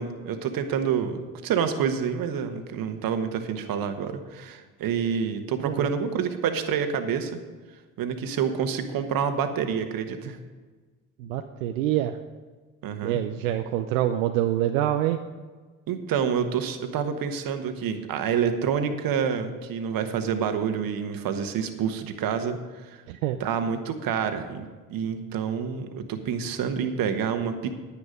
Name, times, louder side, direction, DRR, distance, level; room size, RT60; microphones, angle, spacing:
voice 1, 0.0-7.4 8.0-10.4 12.8-13.2 15.9-22.9 23.4-27.7, right 7 dB, 60° right, 8 dB, 1.4 m, -28 dB
voice 2, 11.2-12.2 13.0-15.2 23.1-23.4, right 12 dB, 85° right, 7 dB, 0.6 m, -26 dB
10.0 x 10.0 x 5.2 m, 1.4 s
hypercardioid pair, 55°, 40 cm